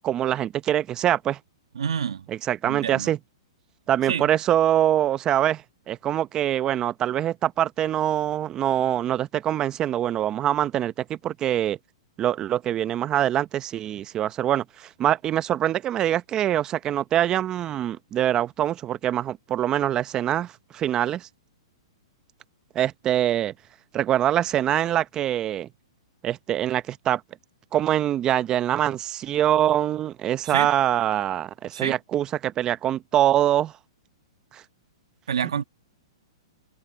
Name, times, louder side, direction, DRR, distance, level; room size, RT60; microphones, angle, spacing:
voice 1, 0.0-1.4 2.3-3.2 3.9-11.8 12.2-21.3 22.7-23.5 23.9-25.7 26.2-27.2 27.7-33.7 34.5-34.6, right 11 dB, 25° right, 0.8 m, -24 dB
voice 2, 1.8-2.3 2.6-3.1 4.1-4.3 30.5-30.7 31.7-32.0 35.3-35.6, right 7 dB, 80° right, 1.7 m, -28 dB
hypercardioid pair, 135°, 3 cm